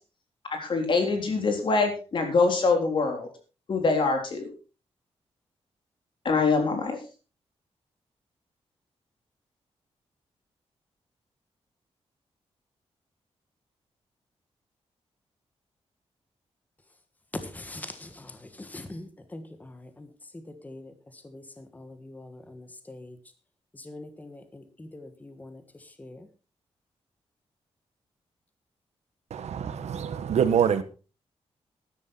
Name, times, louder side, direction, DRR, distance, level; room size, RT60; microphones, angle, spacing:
voice 1, 0.5-3.3 3.7-4.5 6.3-7.0, left 4 dB, 50° left, 4 dB, 3.6 m, -24 dB
voice 2, 17.3-20.1 20.3-23.2 23.7-26.3, left 2 dB, 15° left, 8 dB, 1.5 m, -43 dB
voice 3, 29.3-30.8, right 8 dB, 85° right, 12 dB, 1.4 m, -25 dB
13.0 x 11.5 x 4.2 m, 0.35 s
wide cardioid pair, 165°, 11 cm